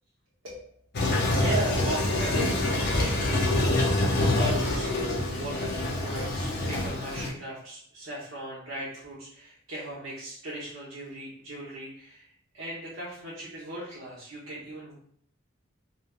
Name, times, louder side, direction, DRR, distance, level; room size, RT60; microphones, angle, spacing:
Toilet flush, 0.9-7.3, left 1 dB, 55° left, 0.6 m, -26 dB
voice 1, 1.3-4.9 5.3-12.3 12.5-14.9, right 1 dB, 70° right, -7 dB, 0.7 m, -38 dB
3.1 x 2.2 x 2.2 m, 0.62 s
head